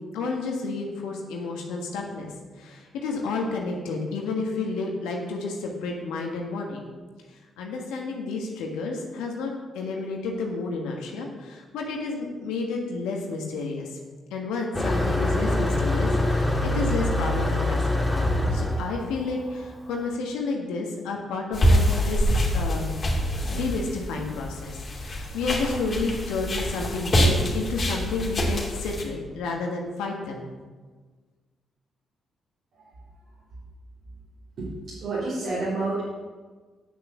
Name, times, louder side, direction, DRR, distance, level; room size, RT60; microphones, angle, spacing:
voice 1, 0.1-2.3 2.6-6.9 7.6-14.0 14.3-18.2 18.5-22.3 22.5-22.9 23.5-30.5, left 3 dB, 80° left, 1 dB, 1.5 m, -31 dB
Motor vehicle (road), 14.7-19.9, left 1 dB, 5° left, 2.8 m, -24 dB
sound 1, 21.5-29.0, equal, 40° left, 2.8 m, -25 dB
voice 2, 34.6-36.0, right 3 dB, 65° right, -9 dB, 3.8 m, -29 dB
8.7 x 6.6 x 7.2 m, 1.4 s
hypercardioid pair, 50°, 0 cm